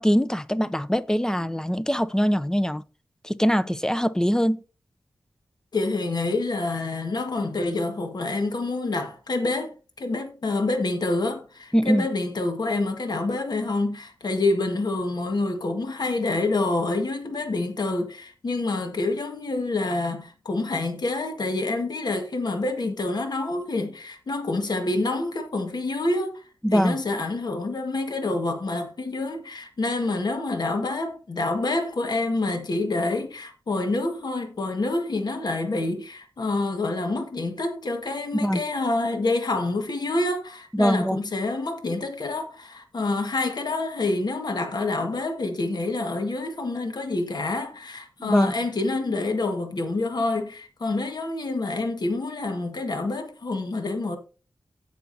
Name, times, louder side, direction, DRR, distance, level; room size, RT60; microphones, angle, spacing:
voice 1, 0.0-2.8 3.2-4.6 11.7-12.1 26.6-27.0 38.3-38.6 40.7-41.2 48.2-48.5, equal, 10° left, 0.6 m, -22 dB
voice 2, 5.7-54.2, left 2 dB, 60° left, 1.6 m, -27 dB
16.5 x 5.8 x 2.7 m
wide cardioid pair, 85°, 8 cm